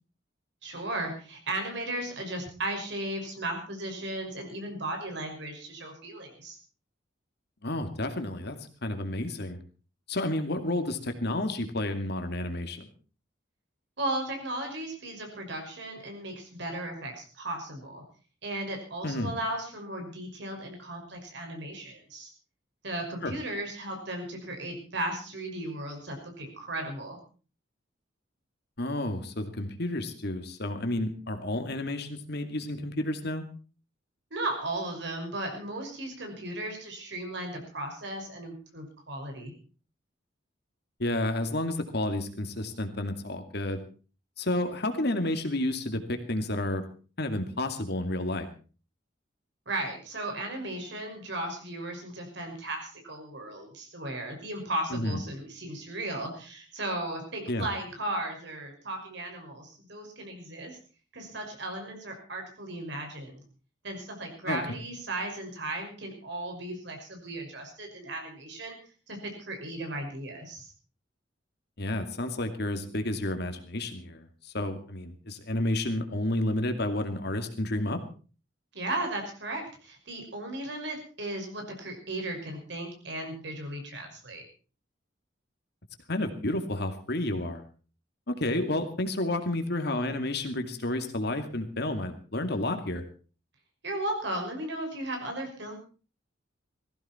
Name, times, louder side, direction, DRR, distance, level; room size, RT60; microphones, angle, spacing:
voice 1, 0.6-6.6 14.0-18.0 18.4-22.3 22.8-27.2 34.3-39.5 49.7-60.8 61.1-63.4 63.8-68.8 69.1-70.7 78.7-84.4 93.8-95.8, right 1 dB, 65° right, 3 dB, 6.0 m, -36 dB
voice 2, 7.6-9.6 10.1-12.9 19.0-19.3 23.2-23.3 28.8-33.4 41.0-43.8 44.4-46.8 47.2-48.5 54.9-55.2 57.5-57.7 64.4-64.8 71.8-78.0 86.1-87.6 88.3-93.0, left 1 dB, 60° left, 7 dB, 2.4 m, -31 dB
19.0 x 15.5 x 4.5 m, 0.38 s
head